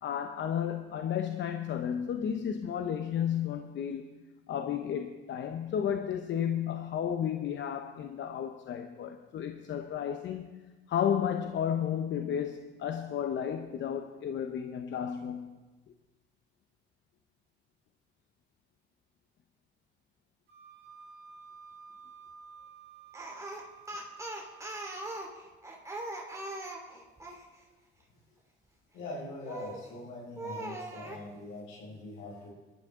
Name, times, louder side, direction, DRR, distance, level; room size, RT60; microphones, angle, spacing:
voice 1, 0.0-4.0 4.5-10.6 10.9-15.5, left 9 dB, 70° left, 0.8 m, -33 dB
Wind instrument woodwind instrument, 20.5-25.0, right 6 dB, 55° right, 2.3 m, -52 dB
Speech, 23.1-27.4 29.5-29.9 30.4-31.2, right 1 dB, 15° right, 2.7 m, -40 dB
voice 2, 28.9-32.5, left 2 dB, 90° left, 6.0 m, -42 dB
21.5 x 12.5 x 3.7 m
cardioid pair, 90°, 20 cm